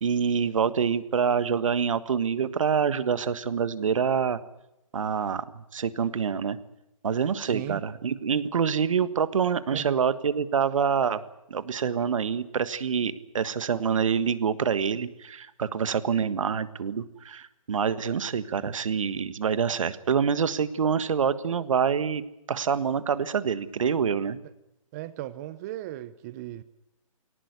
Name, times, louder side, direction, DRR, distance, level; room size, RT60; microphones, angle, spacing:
voice 1, 0.0-4.4 4.9-6.6 7.0-11.2 11.5-22.2 22.5-24.4, right 7 dB, 65° right, 14 dB, 1.5 m, -26 dB
voice 2, 7.4-7.8 9.7-10.0 24.9-26.6, right 14 dB, 30° right, 14 dB, 0.8 m, -37 dB
19.5 x 18.0 x 9.6 m, 0.88 s
hypercardioid pair, 140°, 18 cm